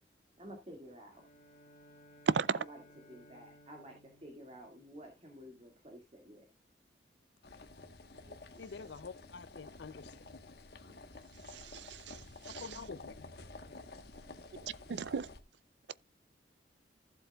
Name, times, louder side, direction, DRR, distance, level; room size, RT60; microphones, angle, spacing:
voice 1, 0.4-1.2 2.5-6.5, equal, 35° right, 2.1 m, -51 dB
Bowed string instrument, 1.1-5.7, equal, 45° left, 3.1 m, -61 dB
sound 1, 7.4-15.4, left 2 dB, 60° left, 1.2 m, -51 dB
voice 2, 8.6-10.1 12.6-13.1, left 5 dB, 75° left, 0.5 m, -47 dB
voice 3, 11.5-12.2 12.4-12.7 14.9-15.3, right 5 dB, 75° right, 0.4 m, -34 dB
15.0 x 7.8 x 2.3 m
head